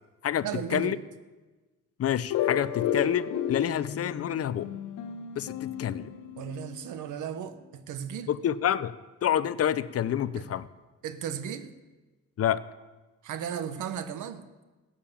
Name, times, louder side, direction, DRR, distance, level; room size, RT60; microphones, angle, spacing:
voice 1, 0.4-1.0 6.4-8.3 10.3-10.5 11.0-11.7 13.2-14.5, right 8 dB, 80° right, 11 dB, 1.1 m, -35 dB
voice 2, 2.0-4.7 5.4-6.1 8.3-8.9 9.2-10.6 12.4-12.6, left 10 dB, 50° left, 16 dB, 0.6 m, -28 dB
sound 1, 2.3-6.9, left 9 dB, 90° left, 1.0 m, -33 dB
14.5 x 8.8 x 7.4 m, 1.2 s
cardioid pair, 90°, 30 cm